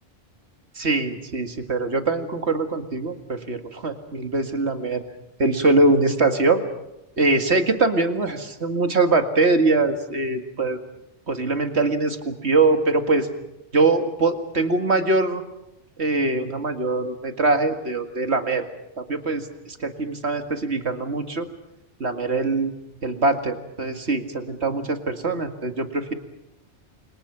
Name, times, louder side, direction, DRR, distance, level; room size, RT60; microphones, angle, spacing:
voice 1, 0.8-5.0 5.4-6.6 7.2-10.8 11.3-13.3 13.7-15.4 16.0-18.6 19.0-21.5 22.0-22.7 23.0-26.1, right 3 dB, 65° right, 6 dB, 2.3 m, -22 dB
30.0 x 26.0 x 5.9 m, 0.86 s
omnidirectional pair, 1.2 m